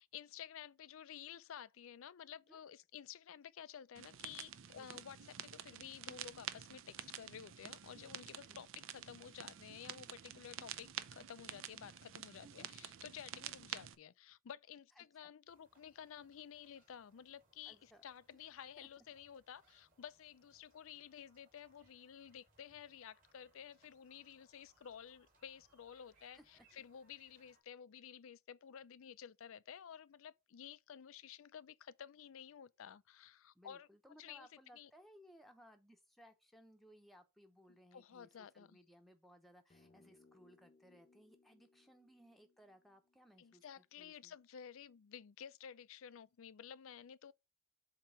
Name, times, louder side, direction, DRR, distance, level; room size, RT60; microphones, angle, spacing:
voice 1, 0.0-33.9 34.2-34.5 34.7-34.9 37.9-38.8 43.4-47.3, left 8 dB, 70° left, 0.4 m, -53 dB
sound 1, 4.0-14.0, right 10 dB, 65° right, 0.5 m, -49 dB
voice 2, 15.0-15.3 17.7-18.0 18.8-18.9 26.3-26.8 33.5-44.3, equal, ahead, 0.8 m, -63 dB
sound 2, 15.5-27.6, right 3 dB, 40° right, 2.4 m, -74 dB
sound 3, 39.7-44.2, left 3 dB, 30° left, 0.7 m, -70 dB
7.5 x 2.9 x 5.6 m
head